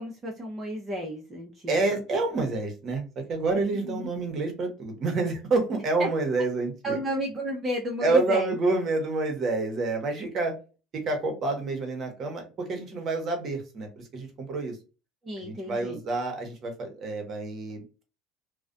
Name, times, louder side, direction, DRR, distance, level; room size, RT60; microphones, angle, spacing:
voice 1, 0.0-1.8 3.7-4.1 6.0-6.1 6.8-8.5 15.2-16.0, equal, 20° right, -1 dB, 0.6 m, -32 dB
voice 2, 1.7-7.0 8.0-10.6 10.9-14.8 15.4-17.8, right 3 dB, 45° right, 4 dB, 0.9 m, -28 dB
2.4 x 2.1 x 2.4 m, 0.32 s
supercardioid pair, 110°, 0 cm